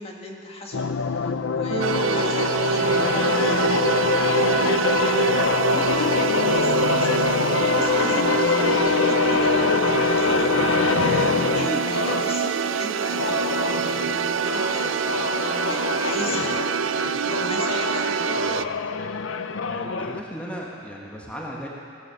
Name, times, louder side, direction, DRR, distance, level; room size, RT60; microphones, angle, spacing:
voice 1, 0.0-13.8 14.4-17.0 17.4-18.2, left 1 dB, 30° left, 0 dB, 1.6 m, -37 dB
sound 1, 0.7-12.4 13.1-20.2, left 5 dB, 85° left, 0.6 m, -24 dB
Keyboard (musical), 1.7-3.8, right 5 dB, 60° right, 1.0 m, -34 dB
sound 2, 1.8-18.7, right 7 dB, 80° right, 0.4 m, -25 dB
voice 2, 18.3-18.7 19.7-21.7, equal, 5° left, -3 dB, 1.4 m, -36 dB
17.5 x 11.5 x 7.0 m, 2.6 s
head